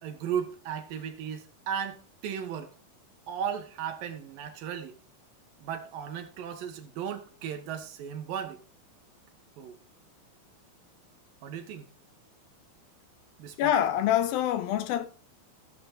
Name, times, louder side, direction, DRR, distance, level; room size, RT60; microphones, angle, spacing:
voice 1, 0.0-2.7 3.3-5.0 5.6-8.6 9.6-9.8 11.4-11.9 13.4-13.8, right 8 dB, 70° right, 3.1 m, -36 dB
voice 2, 13.6-15.1, left 11 dB, 80° left, 2.8 m, -25 dB
15.5 x 8.2 x 2.6 m
omnidirectional pair, 4.2 m